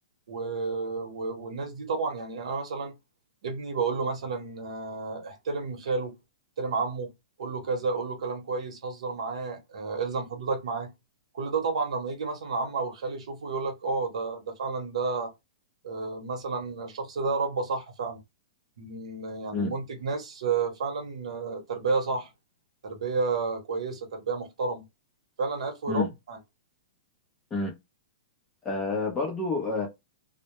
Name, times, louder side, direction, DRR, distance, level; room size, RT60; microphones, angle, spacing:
voice 1, 0.3-2.9 3.4-6.2 6.6-7.1 7.4-10.9 11.3-15.3 15.8-18.2 18.8-22.3 22.8-24.9 25.4-26.4, right 4 dB, 65° right, 0.8 m, -31 dB
voice 2, 28.6-29.9, left 3 dB, 10° left, 0.6 m, -28 dB
2.1 x 2.0 x 2.8 m
hypercardioid pair, 175°, 3 cm